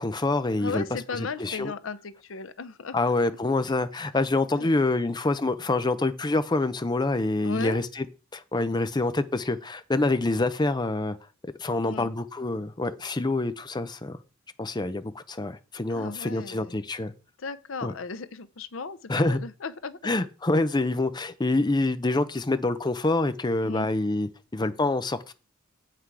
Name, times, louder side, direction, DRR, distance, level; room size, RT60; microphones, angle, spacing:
voice 1, 0.0-0.8 1.4-1.7 2.9-8.0 8.3-11.2 11.6-14.2 14.6-17.1 17.8-17.9 19.1-19.4 20.0-25.3, left 2 dB, 20° left, 0.6 m, -26 dB
voice 2, 0.6-3.0 4.6-4.7 7.4-7.8 11.8-12.1 15.9-16.8 17.4-20.1 23.6-23.9, left 4 dB, 80° left, 0.7 m, -36 dB
8.2 x 5.8 x 4.8 m
head